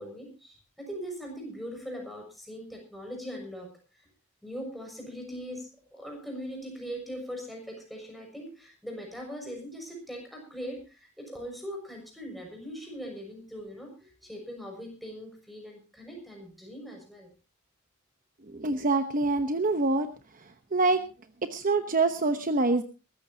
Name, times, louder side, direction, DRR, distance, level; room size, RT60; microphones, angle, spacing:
voice 1, 0.0-3.7 4.4-17.3, equal, ahead, 0 dB, 6.3 m, -41 dB
voice 2, 18.5-20.1 20.7-21.0 21.5-22.8, right 3 dB, 40° right, 8 dB, 1.0 m, -25 dB
23.0 x 14.0 x 2.8 m, 0.32 s
head